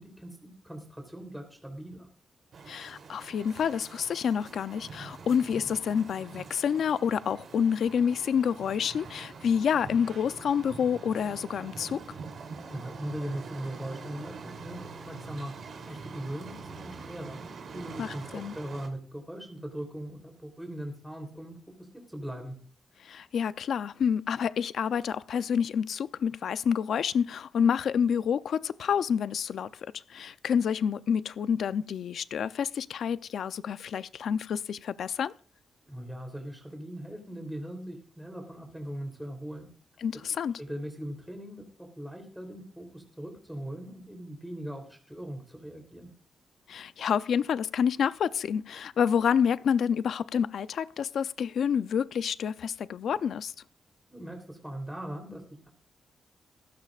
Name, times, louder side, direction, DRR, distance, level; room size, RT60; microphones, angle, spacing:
voice 1, 0.0-2.1 12.7-15.5 15.9-17.4 17.7-21.6 22.1-22.6 35.8-39.7 40.6-46.1 54.1-55.7, right 1 dB, 5° right, 3.4 m, -40 dB
sound 1, 2.5-18.9, right 4 dB, 55° right, 3.2 m, -44 dB
voice 2, 2.7-12.0 18.0-18.5 23.0-35.3 40.0-40.5 46.7-53.5, left 7 dB, 65° left, 0.5 m, -28 dB
17.5 x 15.5 x 2.5 m
wide cardioid pair, 145°, 0 cm